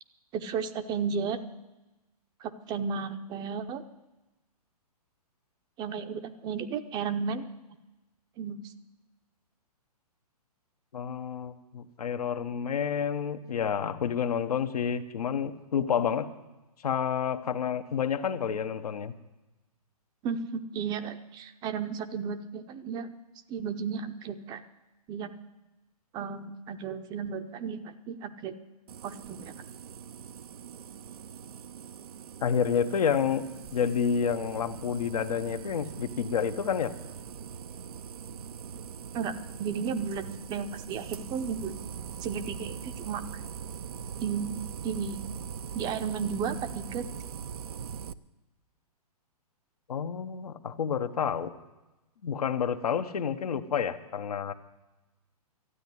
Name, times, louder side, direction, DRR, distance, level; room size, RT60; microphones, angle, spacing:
voice 1, 0.3-1.4 2.4-3.8 5.8-7.5 8.4-8.7 20.2-23.1 23.5-24.6 25.1-25.3 26.1-28.6 29.0-29.5 39.1-40.2 40.5-41.7 42.2-43.2 44.2-45.2 45.7-47.1, right 6 dB, 20° right, 9 dB, 0.7 m, -33 dB
voice 2, 10.9-16.3 16.8-19.1 32.4-33.4 33.7-36.9 49.9-51.5 52.2-54.5, left 7 dB, 70° left, 8 dB, 1.2 m, -29 dB
sound 1, 28.9-48.1, right 7 dB, 70° right, 0.6 m, -42 dB
13.0 x 9.2 x 9.7 m, 1.0 s
hypercardioid pair, 135°, 20 cm